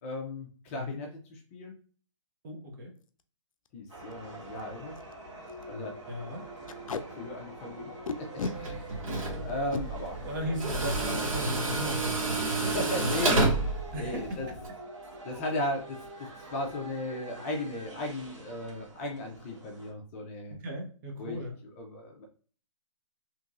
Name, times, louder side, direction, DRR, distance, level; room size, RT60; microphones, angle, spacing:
voice 1, 0.0-1.7 3.7-5.0 5.7-6.0 7.1-7.9 8.2-9.1 9.4-10.6 11.0-11.3 12.7-14.5 15.2-20.6 21.2-21.4 21.8-22.2, left 1 dB, 25° left, 1 dB, 0.5 m, -36 dB
voice 2, 2.4-2.9 6.1-6.5 10.2-12.5 13.9-14.6 20.6-21.6, equal, 35° right, 0 dB, 0.9 m, -37 dB
Packing tape duct tape, 3.0-3.2 3.7-3.8 4.0-4.1 4.6-4.7 5.0-5.1 5.5-5.6 6.7-7.0 8.1-8.6 9.5-9.8 11.4-11.6 11.9-12.1 12.3-12.8, left 4 dB, 90° left, 0.4 m, -35 dB
sound 1, 3.9-19.9, right 2 dB, 60° right, 1.1 m, -45 dB
Tools, 8.4-14.7, right 2 dB, 85° right, 1.0 m, -30 dB
3.0 x 2.6 x 2.3 m, 0.40 s
hypercardioid pair, 150°, 17 cm